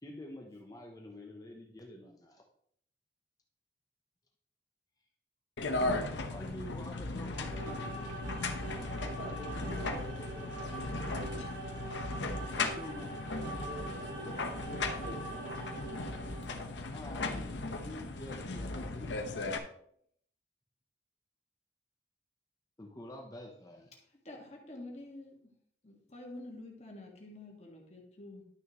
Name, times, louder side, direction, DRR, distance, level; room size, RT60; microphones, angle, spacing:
voice 1, 0.0-2.4 5.8-8.2 12.6-13.2 16.9-19.1 22.8-23.9, left 1 dB, 20° left, 1 dB, 0.8 m, -47 dB
sound 1, 5.6-19.6, left 3 dB, 85° left, 1.0 m, -37 dB
sound 2, 7.1-16.6, right 2 dB, 75° right, 2.7 m, -44 dB
voice 2, 9.0-11.4 13.6-15.8, right 1 dB, 55° right, -4 dB, 3.3 m, -48 dB
voice 3, 24.3-25.5 25.8-28.5, left 2 dB, 35° left, 0 dB, 1.8 m, -48 dB
11.0 x 6.4 x 3.0 m, 0.67 s
head